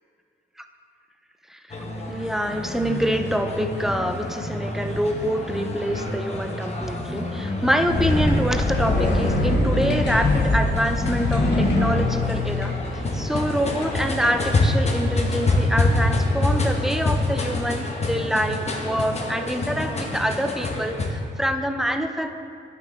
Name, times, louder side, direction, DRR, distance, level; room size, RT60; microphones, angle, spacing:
sound 1, 1.7-21.1, left 2 dB, 35° left, 0.9 m, -27 dB
voice 1, 2.1-12.7 13.1-22.3, equal, ahead, 6 dB, 0.4 m, -26 dB
sound 2, 7.9-14.7, left 2 dB, 65° left, 1.1 m, -24 dB
11.0 x 5.2 x 3.2 m, 2.4 s
cardioid pair, 115°, 19 cm